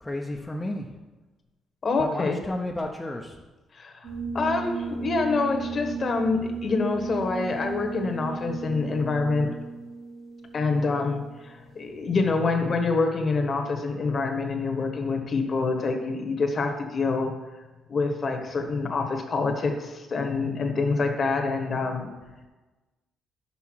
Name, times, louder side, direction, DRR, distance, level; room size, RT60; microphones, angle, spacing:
voice 1, 0.0-0.9 2.0-3.4, left 1 dB, 15° left, 0 dB, 0.7 m, -32 dB
voice 2, 1.8-2.4 3.7-4.1 4.3-9.5 10.5-17.3 17.9-22.1, left 3 dB, 45° left, 4 dB, 1.2 m, -26 dB
sound 1, 4.0-11.5, right 3 dB, 65° right, 1.9 m, -35 dB
5.7 x 5.5 x 6.2 m, 1.2 s
cardioid pair, 90°, 0 cm